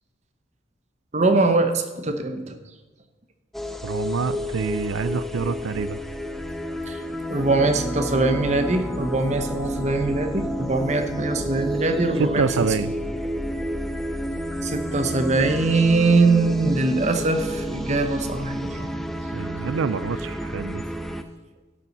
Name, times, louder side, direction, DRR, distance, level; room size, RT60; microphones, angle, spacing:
voice 1, 1.1-2.6 6.9-7.0 7.3-12.4 14.6-18.9, right 3 dB, 35° right, 6 dB, 1.0 m, -22 dB
sound 1, 3.5-21.2, equal, ahead, 0.5 m, -30 dB
voice 2, 3.8-6.0 12.2-13.0 19.3-20.8, right 5 dB, 85° right, 16 dB, 0.4 m, -26 dB
12.0 x 6.9 x 5.9 m, 1.3 s
head